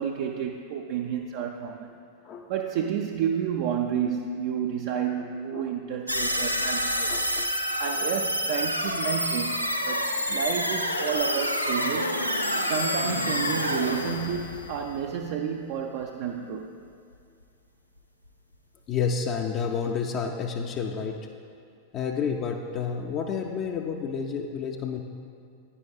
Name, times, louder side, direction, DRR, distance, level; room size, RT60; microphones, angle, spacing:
voice 1, 0.0-1.9 2.5-7.1 7.6-12.2 12.6-16.7, right 8 dB, 50° right, 2 dB, 0.4 m, -30 dB
voice 2, 5.2-5.7 7.1-7.5 18.9-21.2 21.9-25.0, left 6 dB, 35° left, 2 dB, 0.5 m, -30 dB
sound 1, 6.1-15.3, equal, 90° left, 0.4 m, -28 dB
Bell / Door, 12.4-14.9, left 2 dB, 70° left, 0.8 m, -36 dB
9.7 x 9.4 x 2.4 m, 2.4 s
figure-of-eight pair, 90°, 0 cm